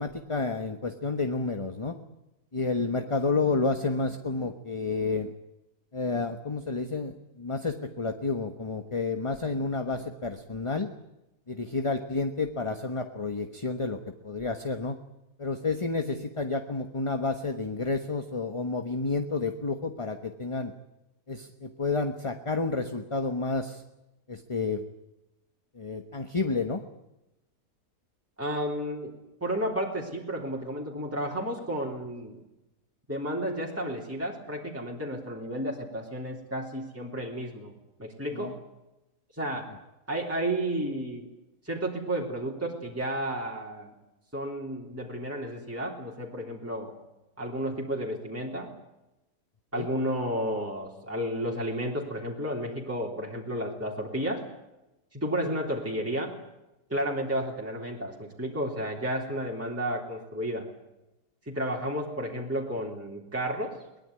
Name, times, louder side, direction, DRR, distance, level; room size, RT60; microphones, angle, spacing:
voice 1, 0.0-2.0 2.5-5.3 5.9-10.9 11.5-15.0 15.4-20.7 21.3-23.8 24.3-24.8 25.7-26.8 38.3-38.5 49.7-49.9, left 3 dB, 20° left, 7 dB, 1.2 m, -30 dB
voice 2, 28.4-32.4 33.1-37.7 38.0-38.5 39.3-39.7 40.1-41.3 41.6-43.9 44.3-46.9 47.4-48.7 49.7-54.4 55.1-56.3 56.9-60.7 61.5-63.7, equal, 10° right, -2 dB, 3.5 m, -32 dB
22.5 x 20.0 x 9.7 m, 0.94 s
omnidirectional pair, 1.7 m